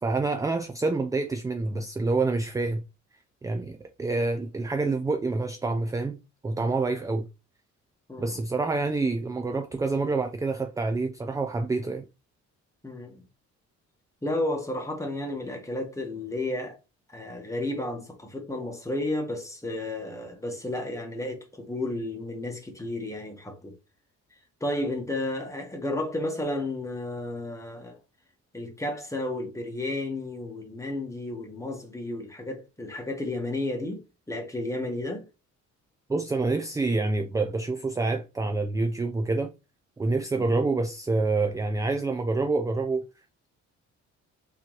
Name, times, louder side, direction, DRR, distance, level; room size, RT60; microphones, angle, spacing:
voice 1, 0.0-2.8 3.4-6.2 6.4-7.3 8.2-12.1 36.1-39.5 40.0-43.0, right 3 dB, 10° right, 0.3 m, -27 dB
voice 2, 12.8-13.2 14.2-16.8 17.1-23.7 24.6-28.0 28.5-35.3 40.4-40.5, left 1 dB, 10° left, 1.2 m, -32 dB
3.4 x 2.9 x 3.0 m
cardioid pair, 90°, 30 cm